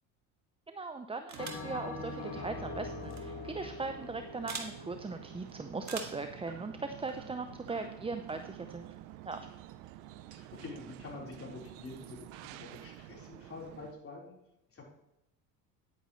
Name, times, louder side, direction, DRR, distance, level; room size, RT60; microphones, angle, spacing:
voice 1, 0.7-8.9 9.3-9.4, right 3 dB, 15° right, 8 dB, 0.6 m, -39 dB
sound 1, 1.3-1.7 3.0-3.2 4.5-4.7 5.8-6.3, right 5 dB, 40° right, 1.9 m, -42 dB
sound 2, 1.3-13.9, right 13 dB, 80° right, 0.7 m, -50 dB
Bell, 1.4-6.0, left 4 dB, 65° left, 2.5 m, -44 dB
voice 2, 7.2-7.6 10.3-14.3 14.7-14.8, left 3 dB, 30° left, -3 dB, 4.2 m, -47 dB
10.0 x 9.5 x 3.2 m, 0.86 s
supercardioid pair, 75°, 42 cm